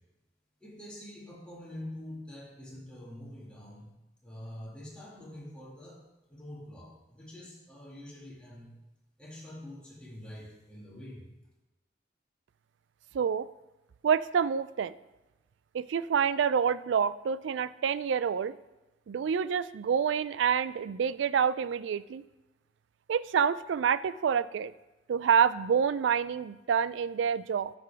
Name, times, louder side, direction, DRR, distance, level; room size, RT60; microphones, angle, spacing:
voice 1, 0.6-3.9 4.2-8.7 9.2-11.2, left 1 dB, 5° left, -5 dB, 2.2 m, -45 dB
voice 2, 13.1-13.5 14.0-14.9 15.7-18.5 19.1-22.2 23.1-24.7 25.1-27.7, right 7 dB, 80° right, 16 dB, 0.3 m, -27 dB
10.0 x 7.1 x 3.5 m, 1.0 s
head